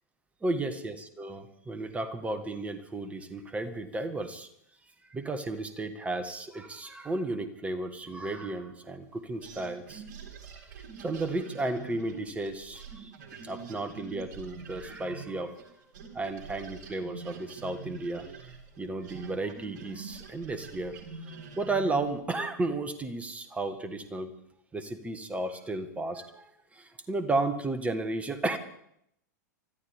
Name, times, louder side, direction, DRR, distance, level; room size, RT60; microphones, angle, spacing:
voice 1, 0.4-4.5 5.1-10.0 10.5-10.6 11.0-13.1 13.4-15.5 16.1-18.5 18.8-21.0 21.3-24.3 24.7-28.6, right 2 dB, 15° right, 9 dB, 1.6 m, -33 dB
sound 1, 9.4-15.7 15.9-22.2, right 5 dB, 55° right, 3.6 m, -45 dB
25.0 x 13.5 x 3.6 m, 0.74 s
figure-of-eight pair, 95°, 10 cm